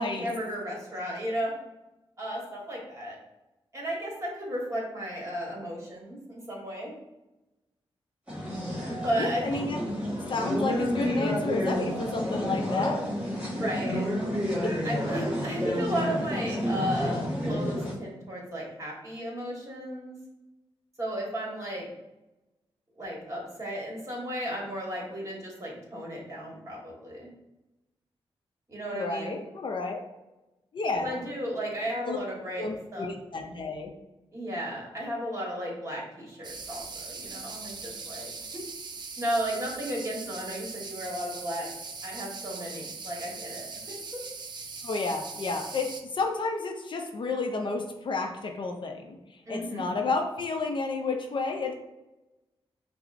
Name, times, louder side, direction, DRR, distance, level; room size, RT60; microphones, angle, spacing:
voice 1, 0.2-1.5 2.2-3.2 3.7-6.9 9.0-9.7 13.5-14.1 14.8-20.2 21.0-21.9 22.9-27.3 28.7-29.4 31.0-32.6 32.9-33.1 34.3-38.6 39.2-41.7 42.0-44.2 49.4-50.0, equal, 30° right, -2 dB, 1.4 m, -34 dB
sound 1, 8.3-17.9, equal, 10° right, 1.3 m, -30 dB
voice 2, 9.2-9.8 10.3-13.1 14.5-14.8 28.9-30.0 30.7-31.2 32.0-32.2 32.6-33.9 44.8-51.7, left 3 dB, 55° left, 4 dB, 0.5 m, -31 dB
sound 2, 36.4-46.0, right 4 dB, 50° right, 0.4 m, -40 dB
5.6 x 2.0 x 2.5 m, 1.0 s
cardioid pair, 80°, 10 cm